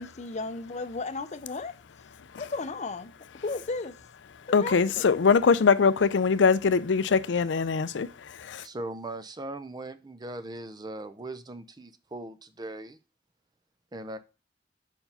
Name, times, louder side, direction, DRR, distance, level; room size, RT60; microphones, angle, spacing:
voice 1, 0.0-1.7 2.4-4.0 4.6-5.0, left 3 dB, 40° left, 0.6 m, -34 dB
voice 2, 4.4-8.7, left 5 dB, 90° left, 0.5 m, -23 dB
voice 3, 8.6-13.0 13.9-14.2, right 2 dB, 25° right, 0.5 m, -39 dB
5.3 x 4.6 x 5.6 m
head